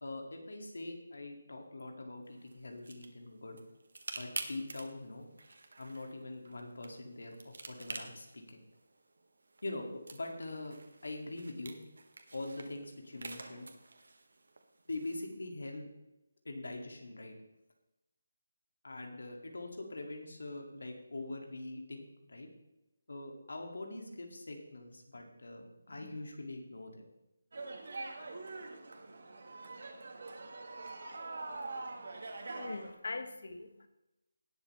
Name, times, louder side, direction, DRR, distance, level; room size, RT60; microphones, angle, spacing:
voice 1, 0.0-3.6 4.1-5.3 5.8-8.6 9.6-10.8 11.0-11.8 12.3-13.7 14.9-15.8 16.4-17.3 18.8-22.5 23.1-27.1, left 2 dB, 85° left, 2 dB, 2.3 m, -43 dB
sound 1, 2.3-15.3, right 3 dB, 65° right, 1.6 m, -49 dB
sound 2, 27.5-32.9, right 3 dB, 45° right, 1.6 m, -44 dB
voice 2, 32.4-33.9, left 3 dB, 55° left, 9 dB, 1.3 m, -42 dB
18.5 x 7.4 x 3.3 m, 0.96 s
figure-of-eight pair, 180°, 0 cm